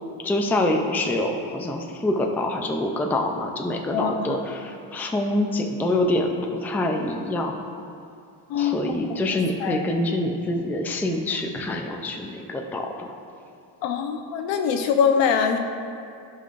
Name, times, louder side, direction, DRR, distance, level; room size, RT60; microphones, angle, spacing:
voice 1, 0.2-7.5 8.6-13.1, left 1 dB, 5° left, 2 dB, 0.4 m, -25 dB
voice 2, 3.9-4.4 8.5-9.1 9.6-9.8 13.8-15.6, left 7 dB, 75° left, 5 dB, 0.9 m, -23 dB
14.5 x 5.7 x 2.5 m, 2.5 s
cardioid pair, 140°, 44 cm